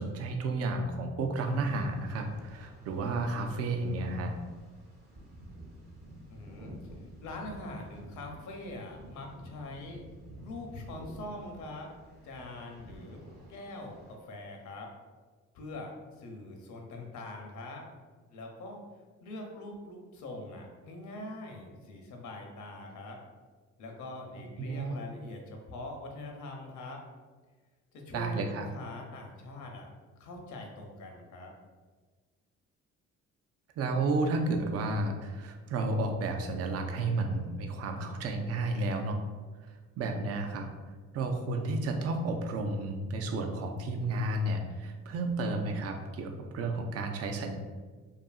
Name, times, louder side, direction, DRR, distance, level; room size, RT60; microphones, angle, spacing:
voice 1, 0.0-4.3 24.6-25.0 28.1-28.7 33.8-39.2 39.7-40.7 41.1-47.6, right 2 dB, 55° right, 4 dB, 0.4 m, -32 dB
sound 1, 1.4-14.1, equal, 35° right, 0.7 m, -50 dB
voice 2, 6.3-6.7 7.2-10.0 10.4-11.9 12.2-14.9 15.5-17.8 18.3-18.9 19.2-23.2 23.8-27.0 27.9-29.9 30.2-31.5, left 2 dB, 75° left, 2 dB, 0.6 m, -43 dB
2.7 x 2.4 x 2.3 m, 1.4 s
cardioid pair, 90°, 30 cm